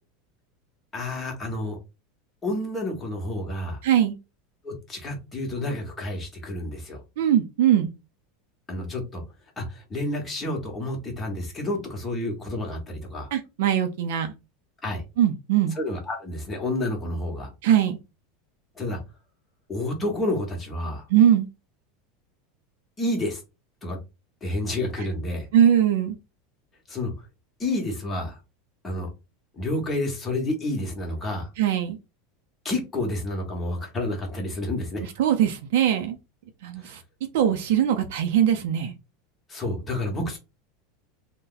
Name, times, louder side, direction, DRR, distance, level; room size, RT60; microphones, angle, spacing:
voice 1, 0.9-1.8 2.4-3.8 4.6-7.0 8.7-9.2 9.6-13.3 14.8-15.0 15.7-17.5 18.8-19.0 19.7-21.1 23.0-23.4 23.8-24.0 24.4-25.5 26.9-27.3 27.6-28.4 28.8-29.1 29.6-31.5 32.6-35.1 36.8-36.9 39.5-40.4, left 1 dB, 15° left, 1.2 m, -29 dB
voice 2, 3.8-4.2 7.2-7.9 13.3-14.3 15.2-15.7 17.6-18.0 21.1-21.5 25.5-26.2 31.6-32.0 35.2-36.2 36.6-37.0 37.3-38.9, right 10 dB, 75° right, 0.5 m, -21 dB
2.7 x 2.2 x 3.9 m
supercardioid pair, 140°, 0 cm